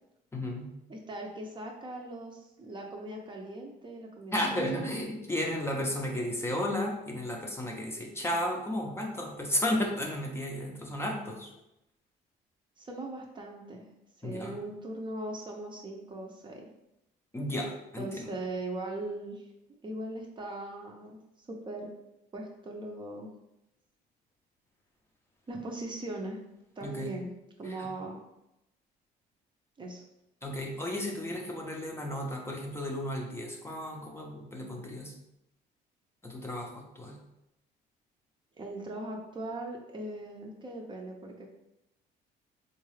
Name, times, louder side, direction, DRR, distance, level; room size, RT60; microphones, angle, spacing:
voice 1, 0.3-0.7 4.3-11.5 14.2-14.6 17.3-18.3 26.8-27.1 27.6-27.9 30.4-35.1 36.2-37.2, left 1 dB, 15° left, 0 dB, 0.6 m, -33 dB
voice 2, 0.9-4.9 12.8-13.9 14.2-16.7 18.0-19.5 19.8-21.9 22.3-23.3 25.5-26.4 26.8-27.3 27.6-28.2 29.8-30.0 38.6-41.5, right 2 dB, 30° right, 1 dB, 0.6 m, -39 dB
3.7 x 2.3 x 3.2 m, 0.87 s
cardioid pair, 110°, 17 cm